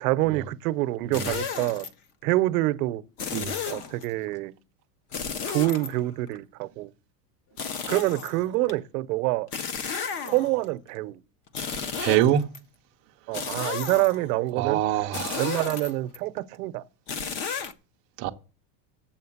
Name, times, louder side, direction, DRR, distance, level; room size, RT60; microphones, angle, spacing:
voice 1, 0.0-1.9 2.2-3.0 3.7-4.5 5.4-6.9 7.9-9.5 10.2-11.2 13.3-16.8, right 17 dB, 65° right, 0.8 m, -26 dB
sound 1, 1.1-1.9 3.2-4.1 5.1-6.4 7.6-8.7 9.5-10.6 11.5-12.6 13.3-14.3 15.1-16.2 17.1-17.7, left 6 dB, 25° left, 0.4 m, -33 dB
voice 2, 12.0-12.4 14.6-15.5 18.2-18.3, right 11 dB, 30° right, 0.4 m, -24 dB
7.6 x 7.2 x 7.1 m
supercardioid pair, 170°, 47 cm